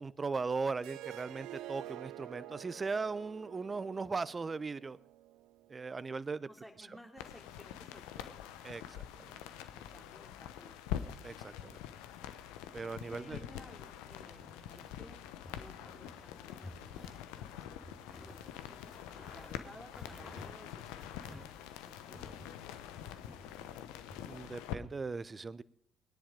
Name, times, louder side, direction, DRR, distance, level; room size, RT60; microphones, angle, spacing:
voice 1, 0.0-5.0 5.7-6.5 8.6-9.4 11.2-11.8 12.7-13.4 24.3-25.6, right 4 dB, 35° right, 18 dB, 0.7 m, -38 dB
Harp, 0.8-5.9, right 14 dB, 70° right, 0.5 m, -49 dB
voice 2, 6.5-8.3 9.7-11.1 13.0-15.2 15.5-17.1 17.5-18.9 19.3-21.5 21.8-22.4, equal, ahead, 2 dB, 3.3 m, -56 dB
sound 1, 7.2-24.8, left 10 dB, 75° left, 0.9 m, -45 dB
sound 2, 14.3-15.0 15.4-16.2 16.5-17.2 17.6-22.6 22.9-24.2, left 1 dB, 35° left, 4.3 m, -54 dB
20.5 x 10.0 x 5.1 m, 0.69 s
hypercardioid pair, 50°, 0 cm